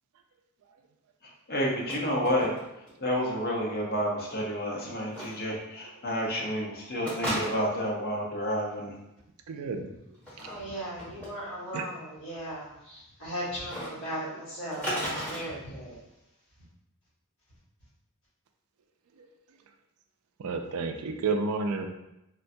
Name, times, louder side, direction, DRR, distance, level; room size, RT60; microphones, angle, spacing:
voice 1, 1.5-2.5 3.0-8.9, equal, 45° left, -2 dB, 0.7 m, -30 dB
sound 1, 1.6-2.0 2.2-2.9 3.1-3.2 5.1-5.3 7.0-7.8 10.1-10.5 11.0-11.3 13.6-13.9 14.7-15.4, equal, 5° left, 1.1 m, -34 dB
voice 2, 9.5-9.9 10.4-10.5 11.7-11.9 19.2-19.3 20.4-21.9, right 4 dB, 75° right, 5 dB, 0.4 m, -31 dB
voice 3, 10.4-16.0, equal, 60° left, -8 dB, 1.4 m, -37 dB
3.6 x 2.2 x 2.6 m, 0.87 s
head